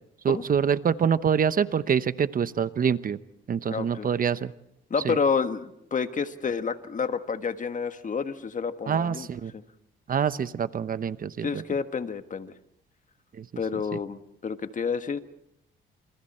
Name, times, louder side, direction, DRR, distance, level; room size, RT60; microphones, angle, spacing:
voice 1, 0.2-3.2 3.5-4.5 5.0-5.2 8.9-9.5 10.1-11.6 13.3-13.5, right 7 dB, 45° right, 14 dB, 0.9 m, -25 dB
voice 2, 3.7-4.1 4.9-9.3 9.5-9.6 11.4-12.5 13.6-15.2, left 5 dB, 40° left, 9 dB, 1.6 m, -29 dB
29.0 x 27.5 x 4.4 m, 0.77 s
cardioid pair, 90°, 20 cm